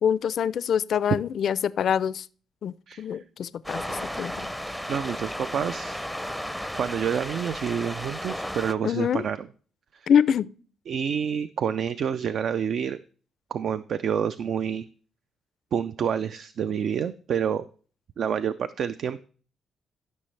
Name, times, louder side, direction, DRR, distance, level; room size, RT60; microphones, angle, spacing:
voice 1, 0.0-2.3 2.6-4.5 8.8-9.2 10.1-10.5, left 8 dB, 60° left, 0.4 m, -25 dB
voice 2, 2.9-3.2 4.9-6.1 6.7-9.5 9.9-10.1 10.9-13.0 13.5-14.9 15.7-17.6 18.2-19.2, right 8 dB, 60° right, 0.4 m, -28 dB
sound 1, 3.6-8.7, equal, ahead, 0.6 m, -34 dB
14.0 x 6.2 x 3.2 m
cardioid pair, 90°, 0 cm